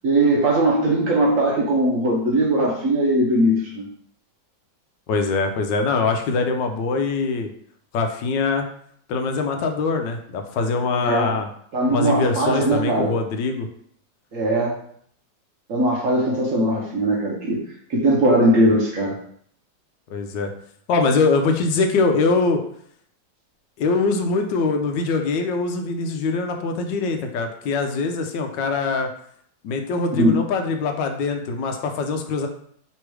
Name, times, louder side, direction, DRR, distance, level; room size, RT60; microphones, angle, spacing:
voice 1, 0.0-3.9 11.0-11.3 11.7-13.1 14.3-14.7 15.7-17.6 17.9-19.2 30.2-30.4, right 1 dB, 60° right, -3 dB, 0.9 m, -19 dB
voice 2, 5.1-7.5 7.9-8.6 9.1-11.5 11.9-13.7 20.1-20.5 20.9-22.6 23.8-29.1 29.6-32.5, left 4 dB, 80° left, 5 dB, 1.3 m, -23 dB
3.5 x 3.1 x 4.6 m, 0.64 s
omnidirectional pair, 2.0 m